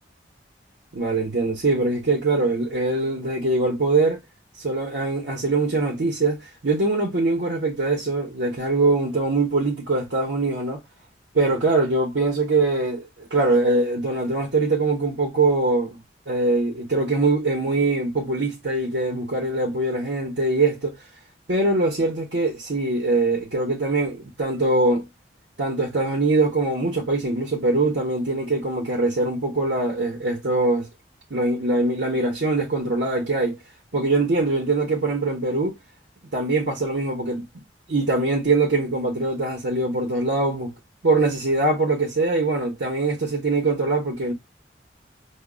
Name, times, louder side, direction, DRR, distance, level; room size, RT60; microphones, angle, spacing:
voice 1, 0.9-4.2 4.6-10.8 11.3-16.0 16.3-21.0 21.5-25.1 25.6-30.9 31.3-33.6 33.9-35.8 36.3-37.4 37.9-40.7 41.0-44.3, right 2 dB, 85° right, 0.9 m, -22 dB
5.0 x 2.3 x 2.2 m
head